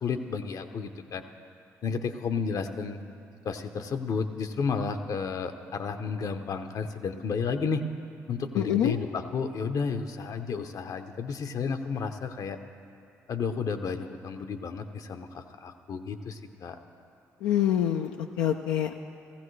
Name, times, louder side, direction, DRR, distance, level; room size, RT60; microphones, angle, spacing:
voice 1, 0.0-1.2 1.8-3.0 3.4-7.9 8.3-12.6 13.3-16.8, left 5 dB, 60° left, 8 dB, 0.8 m, -32 dB
voice 2, 8.5-9.0 17.4-18.9, left 10 dB, 80° left, 3 dB, 0.4 m, -26 dB
16.0 x 15.5 x 3.2 m, 2.5 s
hypercardioid pair, 45°, 7 cm